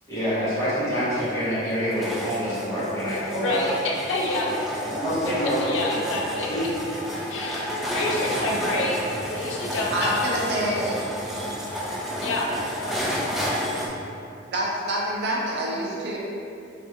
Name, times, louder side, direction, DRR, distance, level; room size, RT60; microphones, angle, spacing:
voice 1, 0.1-3.7 4.8-5.7 6.5-6.6, equal, 15° left, -12 dB, 1.0 m, -26 dB
sound 1, 1.0-13.9, equal, ahead, 0.3 m, -31 dB
voice 2, 3.4-4.5 5.6-6.5 7.3-9.0 9.3-10.2 12.2-12.5 12.8-13.1, left 2 dB, 90° left, -2 dB, 0.4 m, -28 dB
voice 3, 9.9-11.0 14.5-16.2, right 1 dB, 60° right, -3 dB, 0.5 m, -27 dB
3.2 x 2.3 x 2.7 m, 2.7 s
head